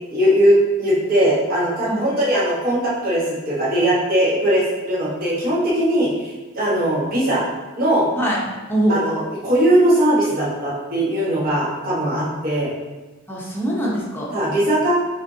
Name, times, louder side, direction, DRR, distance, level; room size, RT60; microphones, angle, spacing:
voice 1, 0.1-7.4 7.8-8.1 8.9-12.7 14.3-14.9, right 1 dB, 45° right, -7 dB, 1.2 m, -19 dB
voice 2, 8.2-9.0 13.3-14.3, right 1 dB, 10° left, -5 dB, 0.8 m, -23 dB
5.7 x 3.4 x 2.7 m, 1.2 s
head